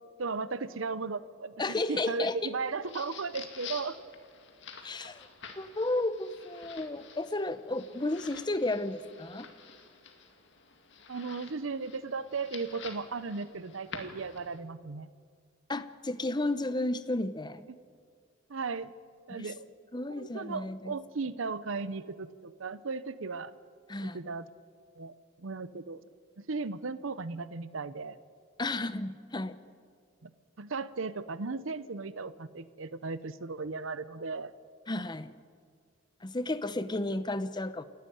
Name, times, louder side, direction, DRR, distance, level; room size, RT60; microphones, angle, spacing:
voice 1, 0.2-4.1 5.0-5.1 11.1-15.1 17.7-17.8 18.5-18.9 19.3-19.7 20.1-23.5 24.0-24.5 25.0-26.0 26.4-28.2 30.2-30.3 30.6-34.5, right 4 dB, 75° right, 15 dB, 0.7 m, -36 dB
voice 2, 1.6-2.5 4.8-5.3 5.6-9.5 15.7-17.6 19.3-19.5 19.9-20.9 23.9-24.2 28.6-29.6 34.9-35.3 36.2-37.8, left 2 dB, 20° left, 13 dB, 0.7 m, -33 dB
sound 1, 2.6-14.6, left 6 dB, 60° left, 2.0 m, -49 dB
28.0 x 11.5 x 9.2 m, 2.1 s
head